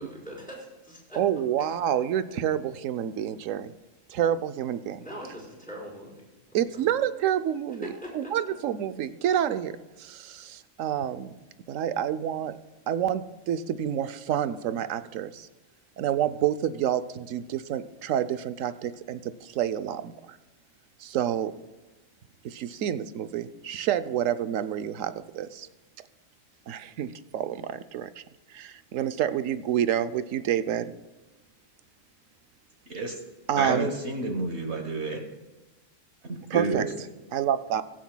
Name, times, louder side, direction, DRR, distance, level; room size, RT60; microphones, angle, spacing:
voice 1, 0.0-1.2 5.0-6.2 6.5-6.9 7.8-8.3, equal, 5° left, -6 dB, 4.0 m, -42 dB
voice 2, 1.2-3.7 4.1-5.0 6.5-9.7 10.0-11.4 11.7-12.5 12.9-15.5 16.0-20.4 21.0-21.5 22.4-25.7 26.7-28.2 28.5-30.9 33.5-33.9 36.5-36.9 37.3-37.8, right 10 dB, 75° right, 12 dB, 1.0 m, -28 dB
voice 3, 33.5-35.2 36.3-36.9, right 3 dB, 55° right, 3 dB, 1.4 m, -29 dB
22.0 x 7.4 x 2.2 m, 1.1 s
omnidirectional pair, 1.4 m